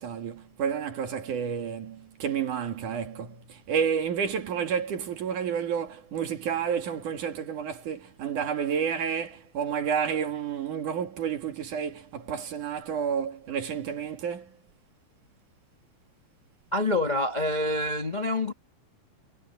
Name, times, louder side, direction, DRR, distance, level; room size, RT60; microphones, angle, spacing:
voice 1, 0.0-14.6, right 7 dB, 60° right, 3.5 m, -30 dB
voice 2, 16.7-18.5, left 1 dB, 30° left, 0.7 m, -26 dB
omnidirectional pair, 4.3 m